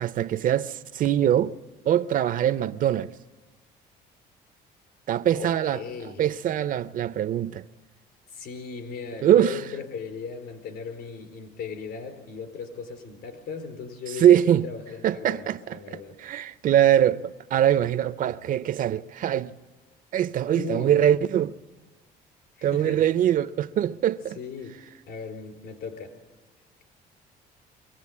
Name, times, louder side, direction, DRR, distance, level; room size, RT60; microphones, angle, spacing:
voice 1, 0.0-1.6 1.9-3.1 5.1-5.8 6.2-7.6 9.2-9.6 14.2-14.7 15.0-19.5 20.1-21.6 22.6-24.4, right 10 dB, 55° right, 0.6 m, -23 dB
voice 2, 5.3-6.2 8.3-16.2 20.5-21.0 22.6-23.1 24.4-24.7 25.1-26.1, left 5 dB, 70° left, 4.4 m, -37 dB
23.5 x 17.5 x 8.5 m
cardioid pair, 110°, 17 cm